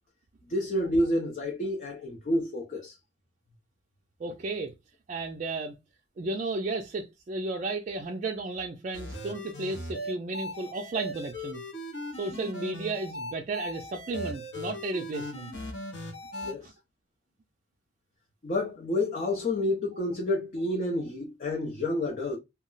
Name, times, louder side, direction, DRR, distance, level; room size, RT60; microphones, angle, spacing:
voice 1, 0.5-3.0 16.4-16.7 18.4-22.4, left 1 dB, 45° left, 0.5 m, -29 dB
voice 2, 4.2-4.7 5.1-5.8 6.2-11.6 12.2-15.5, right 3 dB, 40° right, 0.4 m, -33 dB
sound 1, 8.9-16.5, left 1 dB, 70° left, 0.8 m, -38 dB
2.3 x 2.0 x 3.7 m
head